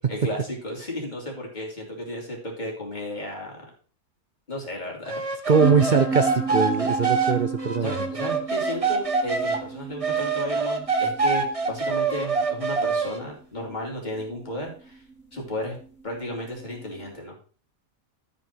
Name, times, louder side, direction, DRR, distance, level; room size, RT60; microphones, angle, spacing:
voice 1, 0.1-3.6 4.5-5.2 7.8-15.0 15.3-15.8 16.0-17.4, left 1 dB, 30° left, -1 dB, 3.1 m, -34 dB
sound 1, 5.1-9.6 10.0-13.2, right 4 dB, 25° right, 1.0 m, -25 dB
voice 2, 5.5-7.9, right 5 dB, 50° right, 8 dB, 0.5 m, -21 dB
sound 2, 5.6-17.1, right 3 dB, 65° left, 3.2 m, -35 dB
12.5 x 5.6 x 4.5 m, 0.41 s
omnidirectional pair, 1.5 m